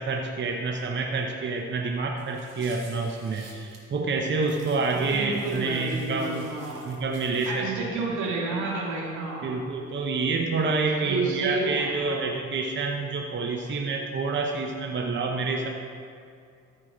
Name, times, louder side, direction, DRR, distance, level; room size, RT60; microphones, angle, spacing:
voice 1, 0.0-6.4 6.8-7.7 9.4-15.7, right 3 dB, 40° right, 2 dB, 0.8 m, -28 dB
sound 1, 2.2-3.8 4.4-7.5, right 4 dB, 55° right, 2.3 m, -51 dB
voice 2, 4.9-6.9 7.5-9.6 11.0-12.2, right 3 dB, 80° right, -2 dB, 2.2 m, -30 dB
14.0 x 4.9 x 5.0 m, 2.3 s
cardioid pair, 90°, 30 cm